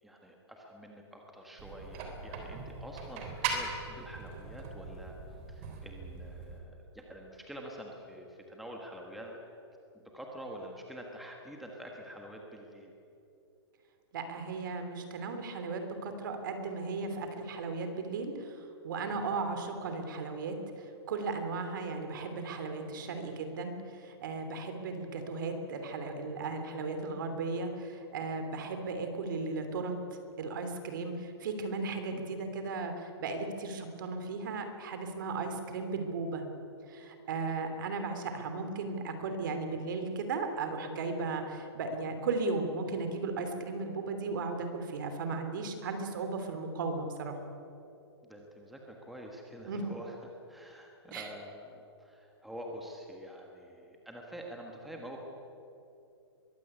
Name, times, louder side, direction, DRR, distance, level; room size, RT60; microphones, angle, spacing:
voice 1, 0.0-5.2 5.5-9.4 9.9-13.0 19.1-19.4 32.1-32.3 48.2-55.2, equal, ahead, 0 dB, 1.4 m, -47 dB
sound 1, 1.6-6.6, right 5 dB, 30° right, 3.5 m, -40 dB
voice 2, 14.1-29.9 30.4-36.4 36.9-47.4 49.7-49.8 51.1-51.3, right 3 dB, 45° right, 6 dB, 3.1 m, -36 dB
22.5 x 16.0 x 9.8 m, 2.8 s
hypercardioid pair, 170°, 14 cm